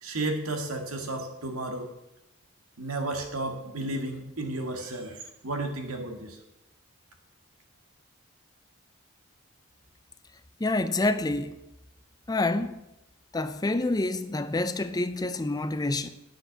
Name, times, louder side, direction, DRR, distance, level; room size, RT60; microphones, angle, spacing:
voice 1, 0.0-1.9 2.8-5.1 5.4-6.4, right 2 dB, 80° right, 1.9 m, -32 dB
voice 2, 10.6-11.5 12.3-12.8 13.3-16.1, left 2 dB, 20° left, 0.4 m, -27 dB
9.7 x 7.7 x 7.1 m
head